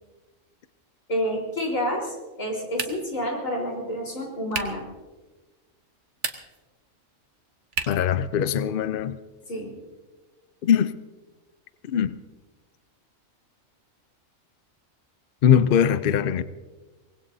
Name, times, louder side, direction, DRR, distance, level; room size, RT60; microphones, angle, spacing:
voice 1, 1.1-4.9 9.5-9.7, equal, 75° left, 4.5 m, -29 dB
sound 1, 2.7-3.2 4.5-4.9 6.1-6.7 7.7-8.1, right 5 dB, 60° right, 1.4 m, -32 dB
voice 2, 7.9-9.2 10.6-10.9 11.8-12.2 15.4-16.4, left 8 dB, 55° left, 0.6 m, -21 dB
24.0 x 19.5 x 2.7 m
omnidirectional pair, 1.4 m